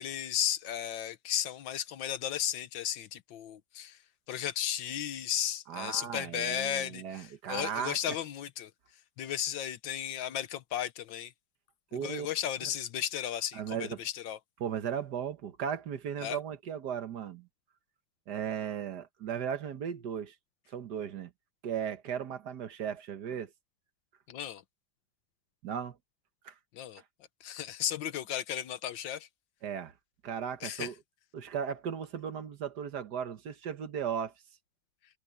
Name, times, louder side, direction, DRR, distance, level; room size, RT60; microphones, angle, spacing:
voice 1, 0.0-4.0 4.3-8.7 9.2-11.3 12.0-14.4 16.2-16.4 24.3-24.6 26.7-27.0 27.4-29.3 30.6-30.9, left 10 dB, 85° left, 1.7 m, -34 dB
voice 2, 5.7-8.0 11.9-12.3 12.6-12.7 13.5-14.0 14.6-17.5 18.3-20.3 20.7-21.3 21.6-23.5 25.6-26.0 26.4-26.5 29.6-29.9 30.2-30.9 31.3-34.3, right 8 dB, 65° right, 1.7 m, -36 dB
omnidirectional pair, 2.0 m